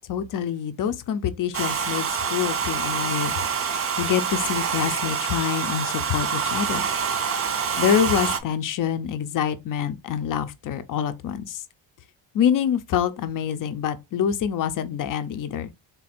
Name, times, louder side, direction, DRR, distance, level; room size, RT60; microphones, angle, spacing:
voice 1, 0.1-3.4 3.7-6.8 7.8-11.6 12.3-15.7, left 8 dB, 45° left, 0.6 m, -26 dB
Domestic sounds home sounds, 1.5-8.4, right 6 dB, 30° right, 0.5 m, -26 dB
3.9 x 2.5 x 4.2 m
cardioid pair, 150°, 48 cm